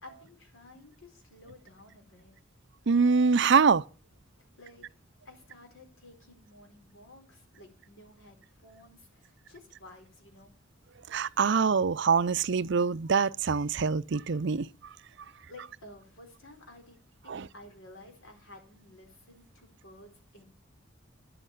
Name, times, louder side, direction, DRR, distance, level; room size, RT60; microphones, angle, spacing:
voice 1, 0.0-2.3 4.4-4.8 5.2-10.6 15.2-20.5, left 2 dB, 85° left, 4.5 m, -53 dB
voice 2, 2.9-3.8 11.1-14.7 17.3-17.5, right 5 dB, 60° right, 0.5 m, -24 dB
11.0 x 7.9 x 9.2 m
head